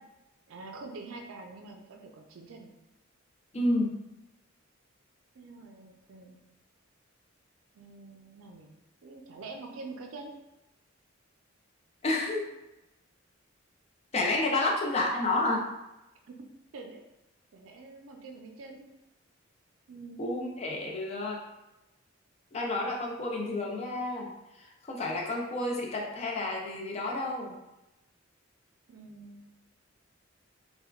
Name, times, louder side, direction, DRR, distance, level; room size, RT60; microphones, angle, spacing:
voice 1, 0.5-2.7 5.3-6.4 7.7-8.7 9.0-10.3 14.5-14.7 16.7-17.0 17.5-18.9 19.9-20.2 28.9-29.5, right 3 dB, 75° right, 3 dB, 0.4 m, -45 dB
voice 2, 3.5-4.0 12.0-12.5 14.1-15.7 20.2-21.4 22.5-27.5, left 2 dB, 30° left, -1 dB, 0.4 m, -30 dB
3.4 x 2.3 x 2.3 m, 0.96 s
head